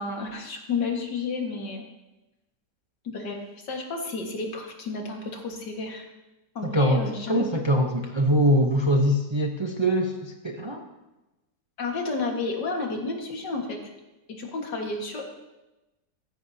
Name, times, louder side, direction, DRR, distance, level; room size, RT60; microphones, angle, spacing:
voice 1, 0.0-1.9 3.0-3.4 3.7-6.0 6.6-7.4 11.8-13.8 14.3-15.3, left 3 dB, 85° left, 1 dB, 2.4 m, -31 dB
voice 2, 6.6-10.8, equal, 25° right, 2 dB, 0.6 m, -23 dB
16.0 x 14.5 x 2.8 m, 1.0 s
omnidirectional pair, 1.8 m